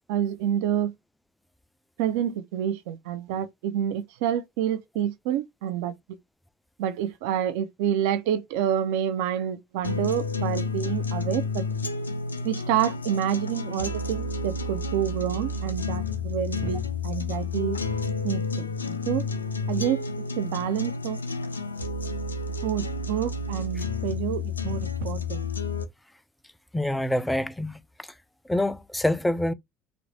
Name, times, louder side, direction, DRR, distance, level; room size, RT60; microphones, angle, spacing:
voice 1, 0.1-0.9 2.0-5.9 6.8-11.6 12.4-17.8 18.2-19.3 19.7-20.0 20.4-21.2 22.6-25.4, right 10 dB, 60° right, 0.5 m, -28 dB
sound 1, 9.8-25.8, left 3 dB, 80° left, 0.4 m, -30 dB
voice 2, 26.7-27.8 28.5-29.5, left 1 dB, 5° left, 0.4 m, -25 dB
3.1 x 2.5 x 3.1 m
figure-of-eight pair, 65°, 0 cm